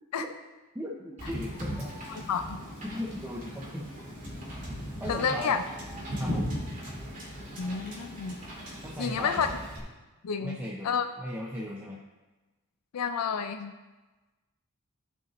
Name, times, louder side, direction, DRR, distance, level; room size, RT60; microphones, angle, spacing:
voice 1, 0.7-1.9 2.8-3.9 5.0-5.6 6.2-6.5 8.8-9.5 10.4-12.0, equal, 10° right, -4 dB, 0.7 m, -37 dB
Wind / Boat Water vehicle, 1.2-9.8, equal, 35° right, 2.0 m, -38 dB
voice 2, 2.3-2.6 5.1-5.6 7.6-8.4 9.0-9.5 10.2-10.6 10.8-11.1 12.9-13.8, left 6 dB, 80° left, 8 dB, 0.4 m, -29 dB
12.5 x 5.3 x 3.1 m, 1.2 s
head